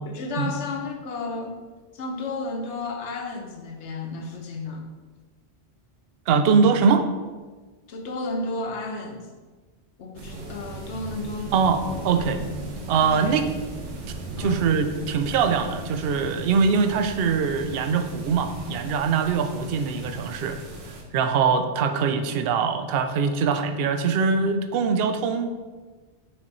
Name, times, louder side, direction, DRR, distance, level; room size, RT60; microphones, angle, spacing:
voice 1, 0.0-1.6 1.9-4.8 7.9-9.2 10.0-11.5 13.0-13.4 14.4-14.7, left 3 dB, 75° left, 3 dB, 1.1 m, -32 dB
voice 2, 6.3-7.1 11.5-12.4 12.9-13.5 14.4-20.6 21.1-25.5, right 5 dB, 65° right, 8 dB, 0.7 m, -22 dB
sound 1, 10.2-21.0, right 2 dB, 85° right, 1.2 m, -37 dB
5.8 x 4.3 x 4.0 m, 1.3 s
omnidirectional pair, 1.2 m